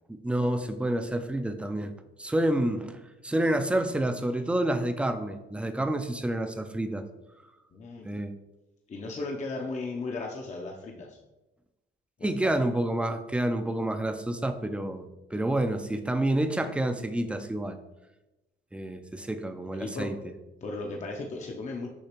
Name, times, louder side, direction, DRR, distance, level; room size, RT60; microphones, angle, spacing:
voice 1, 0.1-1.9 2.2-7.0 8.0-8.3 12.2-15.1 15.3-17.8 18.7-20.2, right 1 dB, 5° right, 7 dB, 0.4 m, -28 dB
voice 2, 7.7-8.1 8.9-11.2 12.2-12.6 19.8-20.1 20.6-21.9, left 3 dB, 35° left, 0 dB, 0.6 m, -36 dB
6.3 x 2.8 x 2.9 m, 1.0 s
cardioid pair, 90°, 20 cm